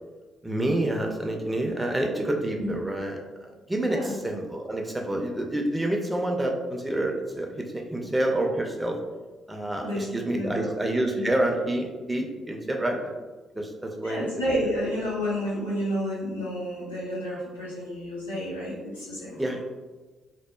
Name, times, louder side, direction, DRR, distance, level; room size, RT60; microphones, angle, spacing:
voice 1, 0.4-9.0 9.5-13.1 13.6-14.3 19.4-19.6, right 1 dB, 10° right, 1 dB, 0.4 m, -28 dB
voice 2, 3.8-4.2 9.8-10.7 11.1-11.3 14.0-19.5, equal, 85° left, -8 dB, 0.6 m, -30 dB
2.7 x 2.0 x 2.2 m, 1.2 s
figure-of-eight pair, 45°, 0 cm